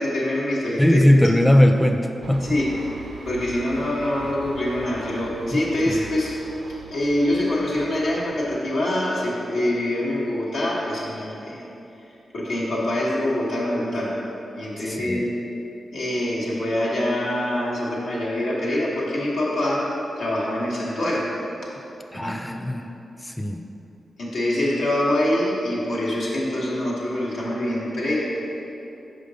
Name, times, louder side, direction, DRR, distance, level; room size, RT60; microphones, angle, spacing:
voice 1, 0.0-1.0 2.4-2.7 3.3-6.3 6.9-11.7 12.3-14.1 14.6-15.3 15.9-19.9 20.2-21.3 22.1-22.4 24.2-28.3, left 1 dB, 85° left, -6 dB, 1.2 m, -25 dB
voice 2, 0.8-2.4 5.9-6.0 14.8-15.2 22.1-22.9 23.2-23.7, left 1 dB, 5° left, 4 dB, 0.4 m, -19 dB
sound 1, 2.2-8.6, right 4 dB, 80° right, 0.4 m, -41 dB
5.1 x 5.1 x 3.9 m, 2.9 s
cardioid pair, 50°, 0 cm